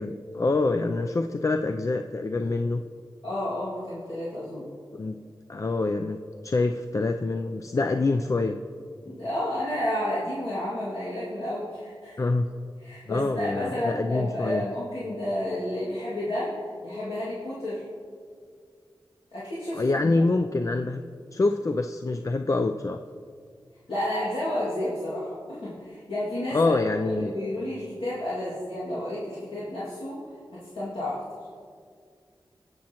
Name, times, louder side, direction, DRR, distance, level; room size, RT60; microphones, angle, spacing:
voice 1, 0.0-2.8 4.9-5.2 5.5-6.2 6.4-8.6 12.2-12.5 13.1-14.6 19.7-21.0 21.3-23.0 26.5-27.3, left 3 dB, 40° left, 6 dB, 0.4 m, -26 dB
voice 2, 3.2-4.7 9.0-12.2 12.8-17.8 19.3-20.2 23.9-26.7 27.0-30.2 30.5-31.2, left 1 dB, 85° left, -10 dB, 2.2 m, -31 dB
17.5 x 6.3 x 2.9 m, 2.1 s
wide cardioid pair, 65°, 9 cm